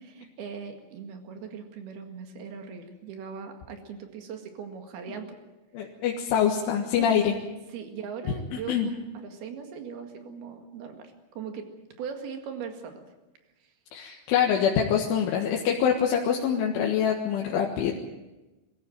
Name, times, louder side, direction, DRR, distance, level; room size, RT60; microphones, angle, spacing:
voice 1, 0.0-5.4 7.0-7.1 7.7-11.7 12.0-13.0 13.6-13.7, right 6 dB, 60° right, 5 dB, 3.6 m, -39 dB
voice 2, 5.7-7.3 8.7-8.9 13.9-17.9, left 8 dB, 80° left, 0 dB, 4.0 m, -25 dB
23.5 x 14.5 x 9.3 m, 1.1 s
omnidirectional pair, 5.7 m